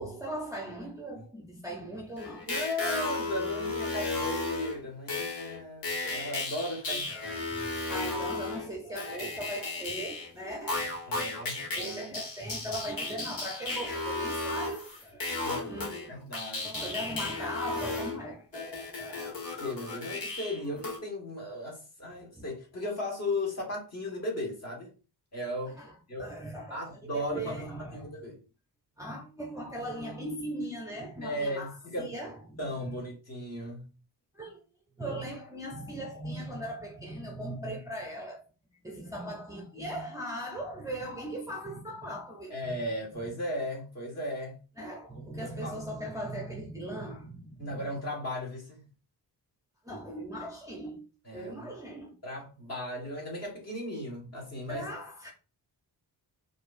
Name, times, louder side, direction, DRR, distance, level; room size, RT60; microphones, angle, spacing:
voice 1, 0.0-2.5 6.9-7.0 7.5-11.0 11.6-16.1 16.6-19.4 22.3-22.4 25.8-25.9 26.2-28.1 29.0-33.0 34.3-34.6 35.0-38.4 38.8-42.8 43.1-43.2 44.8-47.9 49.8-52.1 54.7-55.3, right 1 dB, 10° right, 0.6 m, -39 dB
sound 1, 2.2-10.3 10.7-21.0, left 3 dB, 55° left, 1.5 m, -34 dB
voice 2, 2.5-7.7 11.1-12.1 15.4-16.8 19.6-24.9 25.3-25.8 26.1-26.3 26.7-28.4 31.2-32.1 32.6-33.8 42.5-44.6 45.1-45.8 47.6-48.8 51.2-51.7 52.2-54.9, left 1 dB, 40° left, 1.5 m, -36 dB
4.6 x 2.6 x 2.5 m
wide cardioid pair, 145°, 40 cm